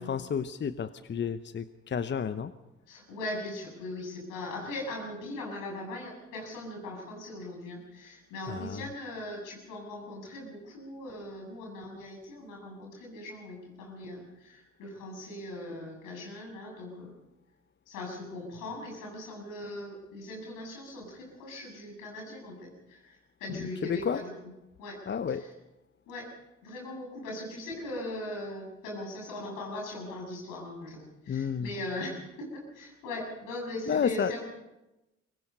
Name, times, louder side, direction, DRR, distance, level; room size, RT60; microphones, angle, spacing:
voice 1, 0.0-2.5 8.4-8.9 23.5-24.2 25.1-25.4 31.3-31.7 33.9-34.3, left 7 dB, 30° left, 13 dB, 0.9 m, -31 dB
voice 2, 2.9-17.1 17.9-24.3 24.8-25.0 25.3-25.4 26.1-26.3 26.6-34.5, left 1 dB, 70° left, 0 dB, 7.6 m, -40 dB
24.0 x 20.0 x 5.5 m, 0.99 s
figure-of-eight pair, 45°, 34 cm